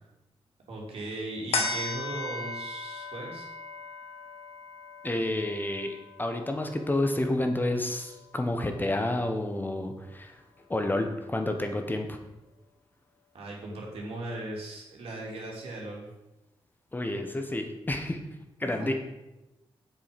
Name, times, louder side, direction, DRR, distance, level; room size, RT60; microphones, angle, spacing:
voice 1, 0.7-3.4 13.3-16.1 18.6-18.9, right 2 dB, 80° right, -2 dB, 2.7 m, -38 dB
sound 1, 1.5-8.3 8.7-8.8, left 3 dB, 80° left, 1.4 m, -37 dB
voice 2, 5.0-10.3 10.7-12.2 16.9-18.2 18.6-18.9, left 1 dB, 20° left, 5 dB, 1.1 m, -30 dB
7.5 x 6.9 x 5.2 m, 0.99 s
cardioid pair, 90°, 10 cm